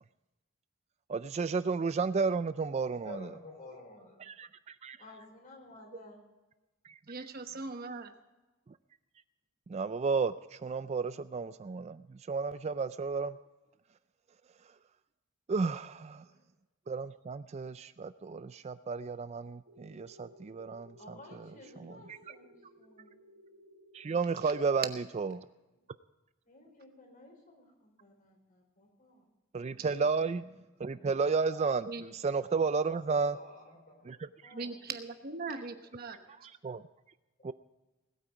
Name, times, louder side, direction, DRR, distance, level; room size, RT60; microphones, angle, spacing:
voice 1, 1.1-3.3 4.2-5.0 6.9-7.0 9.7-13.4 15.5-16.2 16.9-21.5 21.8-22.2 23.9-25.4 29.5-30.5 30.8-33.4 34.1-34.5 36.4-36.8 37.4-37.5, right 4 dB, 30° right, 13 dB, 0.3 m, -33 dB
voice 2, 3.0-4.2 5.0-6.2 16.2-16.4 21.0-23.1 26.4-29.2 33.1-34.1 34.4-34.7 35.5-35.7 36.1-36.2, left 1 dB, 40° left, 1 dB, 4.7 m, -52 dB
voice 3, 7.1-8.1 31.9-32.0 34.5-36.2, right 4 dB, 45° right, 7 dB, 1.0 m, -40 dB
sound 1, 19.7-24.6, equal, 65° right, 1.3 m, -59 dB
20.0 x 9.0 x 4.8 m, 1.1 s
head